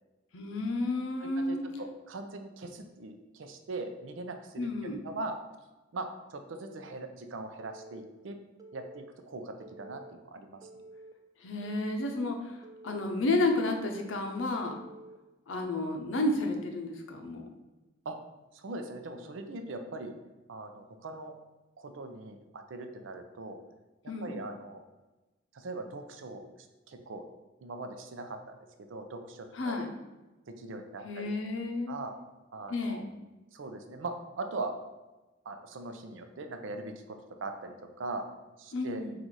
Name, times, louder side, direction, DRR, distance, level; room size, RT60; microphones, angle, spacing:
voice 1, 0.3-1.6 4.6-5.0 11.4-12.6 12.8-14.8 15.5-17.5 24.1-24.4 29.5-29.9 31.0-32.0 32.7-33.1 38.7-39.1, left 2 dB, 85° left, 4 dB, 0.6 m, -31 dB
voice 2, 1.2-5.3 5.9-8.4 8.7-10.6 18.1-18.2 18.5-20.1 20.5-21.3 21.8-23.6 24.2-24.8 25.5-27.2 27.6-28.4 28.8-29.8 30.6-31.3 31.9-32.2 32.5-33.0 33.5-34.7 35.5-38.2 38.6-39.0, right 2 dB, 80° right, 6 dB, 0.5 m, -40 dB
Telephone, 7.6-8.1 8.6-9.1 9.6-10.1 10.6-11.1 11.6-12.1 12.6-13.1 13.6-14.1 14.6-15.2, right 2 dB, 20° right, 0.3 m, -50 dB
4.0 x 2.5 x 4.5 m, 1.1 s
head